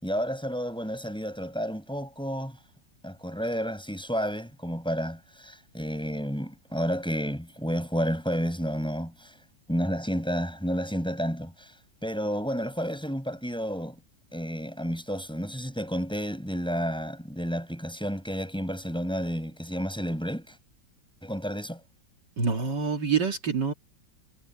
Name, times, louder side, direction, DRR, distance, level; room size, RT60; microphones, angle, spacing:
voice 1, 0.0-2.6 3.0-9.3 9.7-11.7 12.0-14.0 14.3-20.6 21.2-21.8, equal, ahead, 7.5 m, -31 dB
voice 2, 22.4-23.7, right 5 dB, 65° right, 2.8 m, -26 dB
omnidirectional pair, 2.1 m